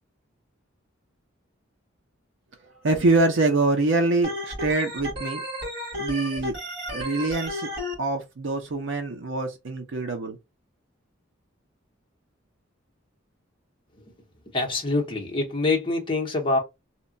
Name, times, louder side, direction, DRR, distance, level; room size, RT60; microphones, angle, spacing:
voice 1, 2.8-5.4 6.0-6.5 6.9-7.7 8.0-10.4, right 2 dB, 70° right, 0.6 m, -24 dB
Organ, 4.2-7.9, left 1 dB, 55° right, 1.7 m, -33 dB
voice 2, 14.5-16.6, left 3 dB, 25° left, 0.7 m, -25 dB
2.8 x 2.1 x 2.6 m
head